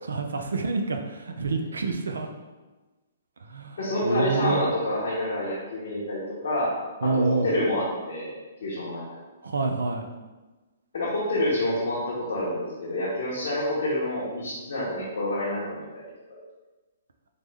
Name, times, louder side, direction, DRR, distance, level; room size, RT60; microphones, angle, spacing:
voice 1, 0.1-2.3 3.5-3.8 4.0-4.6 7.0-7.5 9.4-10.1, right 3 dB, 85° right, 4 dB, 0.3 m, -27 dB
voice 2, 3.8-6.7 7.0-8.3 8.6-9.0 10.9-16.0 16.3-16.4, left 1 dB, 70° left, -7 dB, 0.9 m, -28 dB
3.4 x 2.0 x 3.2 m, 1.2 s
hypercardioid pair, 135°, 0 cm